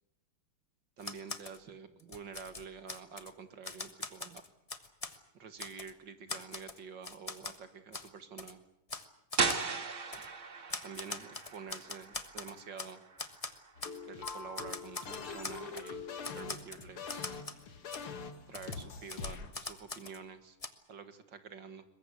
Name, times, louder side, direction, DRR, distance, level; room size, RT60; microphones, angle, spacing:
Typewriter, 1.0-1.6 2.0-3.3 3.6-5.2 5.6-5.9 6.3-7.6 7.9-8.1 8.4-8.5 8.9-9.1 9.3-9.6 10.1-10.3 10.7-12.9 13.2-14.0 14.2-15.9 16.2-17.6 17.9-18.0 18.5-20.2 20.6-20.7, left 3 dB, 20° left, 0.9 m, -42 dB
voice 1, 1.0-4.4 5.3-8.6 10.1-10.3 10.8-13.0 14.1-16.1 16.3-17.4 18.5-20.6 20.9-21.9, right 6 dB, 55° right, 10 dB, 2.3 m, -48 dB
sound 1, 9.4-15.0, right 4 dB, 40° right, 1.7 m, -38 dB
sound 2, 13.8-19.5, left 5 dB, 75° left, 2.8 m, -43 dB
23.0 x 21.5 x 8.4 m, 0.79 s
omnidirectional pair, 2.4 m